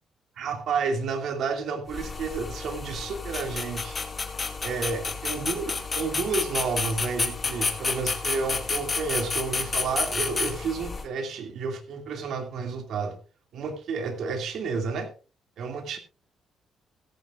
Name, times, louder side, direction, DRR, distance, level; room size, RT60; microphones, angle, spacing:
voice 1, 0.4-4.0 4.6-13.2 13.5-15.1 15.6-16.0, right 5 dB, 70° right, 2.4 m, -31 dB
sound 1, 1.9-11.1, left 4 dB, 35° left, 2.1 m, -30 dB
16.0 x 14.0 x 2.5 m
cardioid pair, 90°, 0 cm